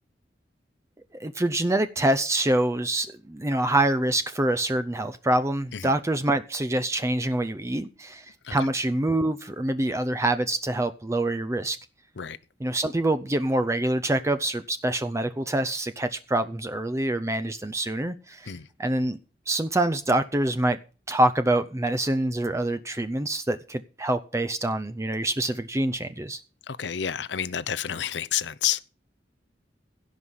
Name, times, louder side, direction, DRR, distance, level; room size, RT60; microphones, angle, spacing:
voice 1, 1.2-11.8 12.6-18.5 18.8-19.2 19.5-20.8 21.1-26.4, right 1 dB, 15° right, 0.5 m, -25 dB
voice 2, 26.7-28.8, left 9 dB, 85° left, 0.6 m, -29 dB
16.5 x 5.6 x 6.3 m
head